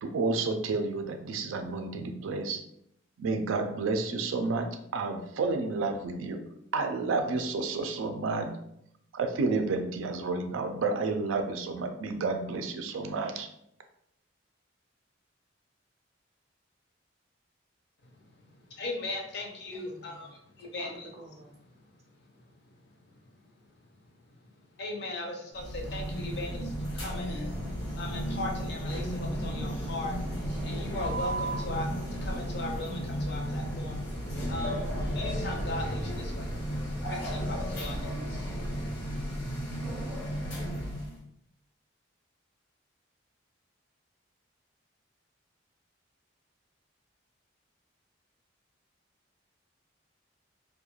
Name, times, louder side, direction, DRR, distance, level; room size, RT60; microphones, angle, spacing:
voice 1, 0.0-2.6 3.2-6.4 6.7-8.5 9.1-13.5, right 3 dB, 90° right, 6 dB, 0.4 m, -30 dB
voice 2, 18.0-21.1 21.7-21.8 22.3-23.2 24.0-24.1 24.4-34.9 35.1-38.4, left 2 dB, 55° left, 1 dB, 0.5 m, -39 dB
voice 3, 19.7-21.5, right 1 dB, 35° right, -1 dB, 0.5 m, -50 dB
sound 1, 25.6-41.2, equal, 85° left, 0.9 m, -33 dB
2.3 x 2.1 x 2.9 m, 0.75 s
head